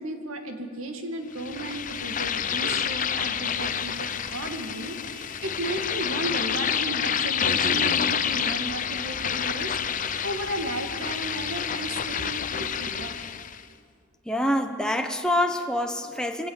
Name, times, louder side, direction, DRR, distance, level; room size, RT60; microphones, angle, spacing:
voice 1, 0.0-13.1, right 1 dB, 80° right, 5 dB, 2.2 m, -34 dB
sound 1, 1.4-13.6, left 8 dB, 40° left, 0.7 m, -28 dB
voice 2, 14.3-16.5, left 1 dB, 5° left, 5 dB, 0.9 m, -26 dB
23.0 x 17.5 x 7.3 m, 2.2 s
head